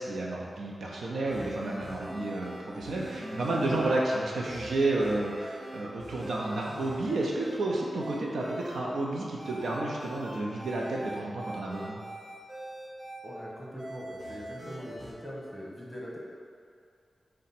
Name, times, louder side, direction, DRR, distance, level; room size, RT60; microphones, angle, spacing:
voice 1, 0.0-12.0, right 2 dB, 85° right, -3 dB, 0.5 m, -31 dB
sound 1, 1.2-4.0 4.4-7.6 8.0-8.8 9.4-13.2 13.8-15.1, right 1 dB, 50° right, 1.1 m, -42 dB
voice 2, 13.2-16.2, equal, ahead, -5 dB, 1.2 m, -42 dB
4.8 x 2.1 x 4.2 m, 2.3 s
cardioid pair, 45°, 0 cm